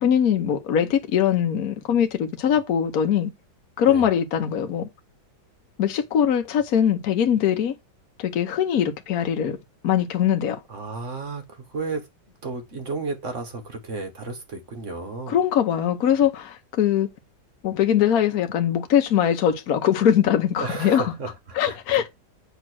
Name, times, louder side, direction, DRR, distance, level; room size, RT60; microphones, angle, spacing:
voice 1, 0.0-3.3 3.8-4.9 5.8-7.8 8.2-9.6 9.8-10.6 15.3-17.1 17.6-21.0 21.5-22.1, left 9 dB, 60° left, 1.3 m, -21 dB
voice 2, 10.7-12.0 12.4-15.4 20.6-22.1, right 3 dB, 45° right, 1.7 m, -33 dB
8.0 x 3.1 x 6.2 m
omnidirectional pair, 1.9 m